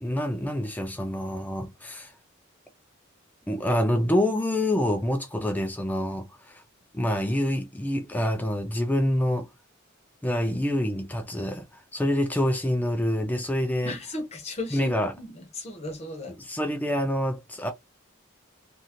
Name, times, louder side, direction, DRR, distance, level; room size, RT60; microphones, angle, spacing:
voice 1, 0.0-2.1 3.5-6.6 6.9-9.5 10.2-14.0 14.7-15.1 16.4-17.7, left 1 dB, 10° left, 0.3 m, -26 dB
voice 2, 13.8-16.4, left 2 dB, 30° left, 0.8 m, -36 dB
2.7 x 2.5 x 2.9 m
head